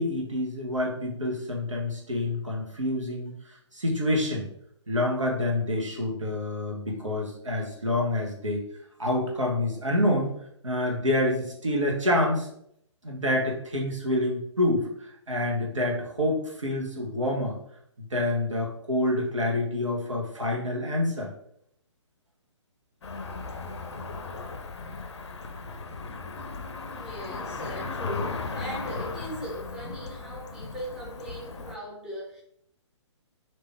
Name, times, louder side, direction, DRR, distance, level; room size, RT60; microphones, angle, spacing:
voice 1, 0.0-3.3 3.7-4.5 4.9-8.6 9.0-10.3 10.6-12.5 13.0-17.6 18.1-21.3, left 1 dB, 85° right, -1 dB, 1.2 m, -27 dB
Cricket / Motor vehicle (road), 23.0-31.7, left 4 dB, 60° left, 0.5 m, -36 dB
voice 2, 26.9-32.4, equal, 5° right, -7 dB, 1.0 m, -39 dB
3.4 x 2.8 x 3.5 m, 0.71 s
figure-of-eight pair, 130°, 16 cm